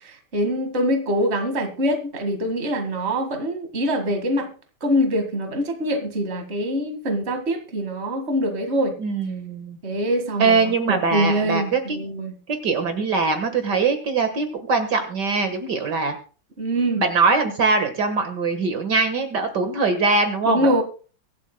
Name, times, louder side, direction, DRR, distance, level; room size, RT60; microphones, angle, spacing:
voice 1, 0.3-4.5 4.8-9.0 9.8-12.3 16.6-17.0 20.5-20.8, equal, 35° right, 6 dB, 2.0 m, -24 dB
voice 2, 9.0-9.8 10.4-12.0 12.6-16.2 17.0-20.8, right 4 dB, 60° right, 7 dB, 2.0 m, -22 dB
24.0 x 8.4 x 2.2 m, 0.37 s
omnidirectional pair, 2.1 m